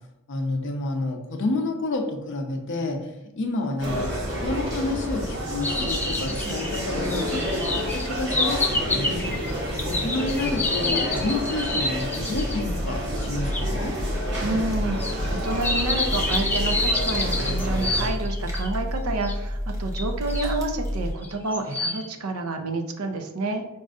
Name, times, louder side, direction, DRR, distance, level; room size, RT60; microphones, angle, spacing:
voice 1, 0.3-4.1 4.4-9.3 9.8-13.9, left 2 dB, 55° left, 3 dB, 0.6 m, -29 dB
sound 1, 3.8-18.1, equal, 50° right, 1.1 m, -29 dB
sound 2, 5.6-12.6 13.5-13.6 15.0-18.7 19.2-19.3 19.9-20.6 21.2-22.0, left 2 dB, 10° left, 0.3 m, -28 dB
sound 3, 12.3-21.1, equal, 15° right, 0.7 m, -30 dB
voice 2, 14.4-23.6, right 2 dB, 70° right, 5 dB, 0.5 m, -29 dB
5.2 x 2.4 x 2.4 m, 0.93 s
head